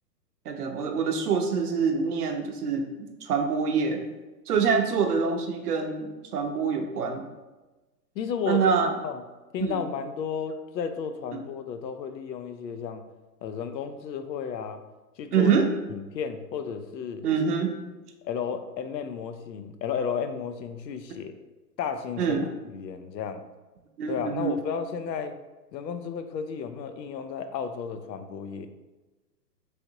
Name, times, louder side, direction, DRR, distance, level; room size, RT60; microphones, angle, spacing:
voice 1, 0.5-4.0 4.5-7.2 8.5-8.9 9.6-9.8 15.3-15.7 17.2-17.7 22.2-22.4 24.0-24.5, right 6 dB, 65° right, 4 dB, 0.6 m, -25 dB
voice 2, 8.2-8.6 9.0-9.2 9.5-13.0 13.4-14.8 15.2-15.5 15.9-17.3 18.2-21.3 21.8-22.4 22.7-23.4 24.1-25.4 25.7-28.7, left 7 dB, 80° left, 9 dB, 0.6 m, -33 dB
3.3 x 2.7 x 2.7 m, 1.2 s
hypercardioid pair, 170°, 50 cm